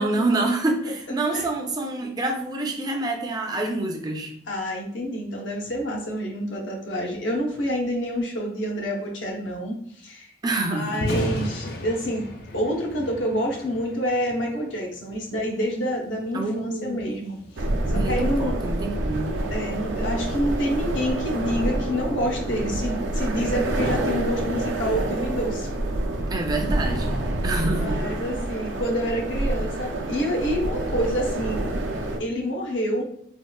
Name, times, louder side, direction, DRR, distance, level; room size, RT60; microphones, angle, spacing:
voice 1, 0.0-4.3 10.4-11.1 16.3-17.0 17.9-19.4 26.3-28.2, right 2 dB, 20° right, 2 dB, 0.4 m, -27 dB
voice 2, 4.5-10.3 10.7-12.3 12.5-17.4 17.9-18.6 19.5-25.7 27.8-31.7 32.2-33.0, equal, 85° left, 0 dB, 0.7 m, -27 dB
Thunder, 10.9-25.0, left 1 dB, 55° left, 0.4 m, -38 dB
sound 1, 17.6-32.2, right 1 dB, 80° right, 0.4 m, -27 dB
3.5 x 2.3 x 2.2 m, 0.67 s
head